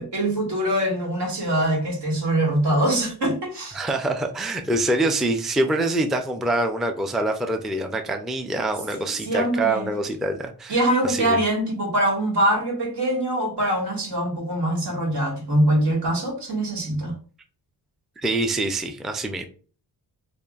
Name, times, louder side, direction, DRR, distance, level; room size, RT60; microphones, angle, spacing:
voice 1, 0.0-3.8 9.2-9.9 10.7-17.1, right 1 dB, 75° right, 1.9 m, -23 dB
voice 2, 3.7-10.8 11.0-11.4 18.2-19.5, right 2 dB, ahead, 0.4 m, -25 dB
5.2 x 2.5 x 2.4 m
cardioid pair, 95°, 42 cm